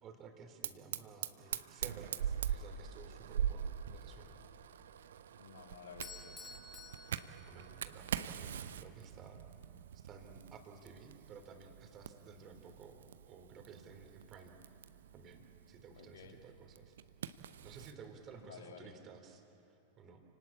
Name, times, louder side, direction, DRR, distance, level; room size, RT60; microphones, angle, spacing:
voice 1, 0.0-4.4 7.5-9.4 9.9-13.0 13.3-14.5 15.1-17.0 17.6-20.2, right 5 dB, 30° right, 5 dB, 3.4 m, -55 dB
Fire, 0.6-18.0, right 9 dB, 65° right, 0.8 m, -43 dB
voice 2, 5.4-6.4 9.7-9.8 16.0-16.4 18.4-18.9, left 6 dB, 65° left, 5 dB, 2.1 m, -53 dB
Bell / Doorbell, 6.0-8.1, left 5 dB, 20° left, 1.9 m, -52 dB
29.5 x 19.0 x 8.6 m, 2.9 s
figure-of-eight pair, 90°, 0 cm